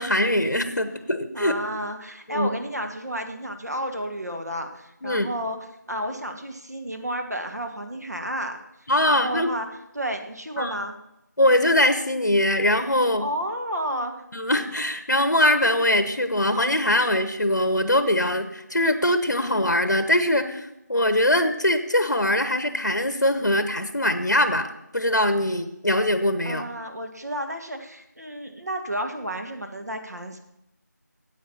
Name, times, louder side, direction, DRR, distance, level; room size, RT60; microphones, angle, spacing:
voice 1, 0.0-1.5 2.3-2.5 5.0-5.3 8.9-9.5 10.6-10.7 11.4-13.3 14.3-24.7 24.9-26.6, left 1 dB, 65° left, 10 dB, 1.0 m, -22 dB
voice 2, 1.3-5.6 5.9-8.6 9.0-9.7 9.9-11.0 13.2-14.2 26.4-30.4, equal, 60° right, 4 dB, 1.6 m, -31 dB
9.1 x 8.3 x 5.7 m, 0.85 s
figure-of-eight pair, 175°, 10 cm